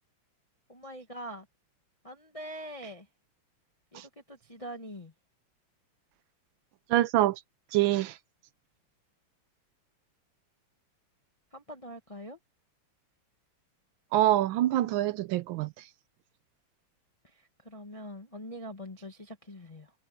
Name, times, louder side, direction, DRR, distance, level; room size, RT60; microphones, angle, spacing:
voice 1, 0.7-1.4 2.0-3.1 3.9-5.1 11.5-12.4 17.3-19.9, equal, 20° left, 1.3 m, -43 dB
voice 2, 6.9-7.4 7.7-8.2 14.1-15.7, right 14 dB, 75° right, 1.2 m, -25 dB
omnidirectional pair, 2.4 m